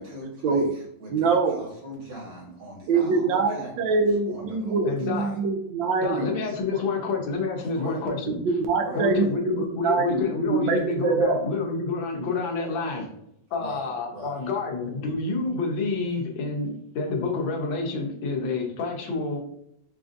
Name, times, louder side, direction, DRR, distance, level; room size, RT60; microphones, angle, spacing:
voice 1, 0.0-5.3 6.1-6.3 6.7-6.9 7.7-8.0 8.7-9.3 13.6-14.4, right 1 dB, 65° right, -4 dB, 2.2 m, -40 dB
voice 2, 1.1-1.6 2.9-6.2 8.3-11.4, right 4 dB, 80° right, 4 dB, 1.3 m, -24 dB
voice 3, 4.8-5.3 6.0-8.4 8.9-13.1 13.5-19.4, left 4 dB, 90° left, 0 dB, 1.6 m, -28 dB
5.7 x 2.5 x 2.5 m, 0.75 s
omnidirectional pair, 2.1 m